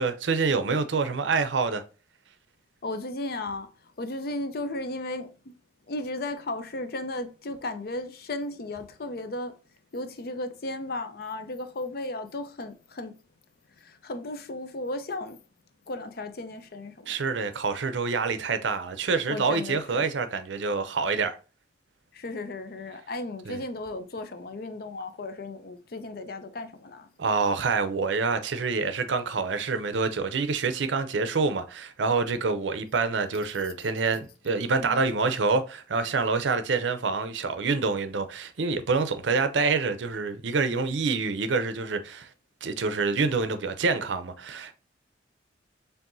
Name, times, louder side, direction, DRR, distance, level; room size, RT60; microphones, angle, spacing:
voice 1, 0.0-1.8 17.1-21.4 23.5-23.6 27.2-42.3 42.6-44.7, right 4 dB, 80° right, 0.6 m, -27 dB
voice 2, 2.8-3.7 4.0-5.6 5.9-9.6 9.9-13.1 13.8-15.4 15.9-17.3 19.3-20.1 22.1-27.1 34.8-35.0, left 2 dB, 55° left, 0.5 m, -35 dB
4.6 x 3.3 x 2.6 m
head